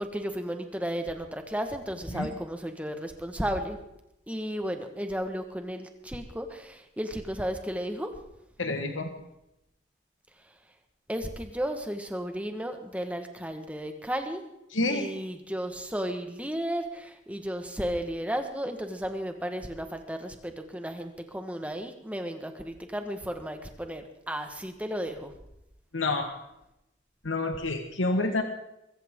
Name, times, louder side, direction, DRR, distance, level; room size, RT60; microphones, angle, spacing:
voice 1, 0.0-3.8 4.3-8.1 11.1-14.4 14.9-25.3, equal, 5° right, 6 dB, 1.4 m, -34 dB
voice 2, 8.6-9.1 14.7-15.1 25.9-26.4 27.2-28.4, left 2 dB, 85° left, 5 dB, 1.5 m, -28 dB
23.0 x 14.5 x 3.7 m, 0.87 s
head